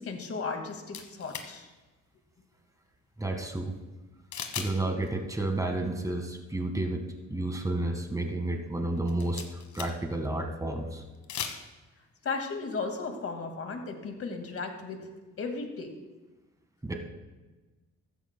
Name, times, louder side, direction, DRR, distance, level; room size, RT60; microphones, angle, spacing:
voice 1, 0.0-1.7 12.2-15.9, left 4 dB, 50° left, 4 dB, 2.0 m, -35 dB
sound 1, 0.9-1.5 4.3-4.7 5.0-5.1 9.0-10.1 11.1-11.6, left 7 dB, 70° left, 1.5 m, -37 dB
voice 2, 3.2-3.7 4.6-11.0 16.8-16.9, right 2 dB, 10° right, 3 dB, 1.7 m, -31 dB
15.5 x 13.0 x 2.2 m, 1.2 s
cardioid pair, 90°, 30 cm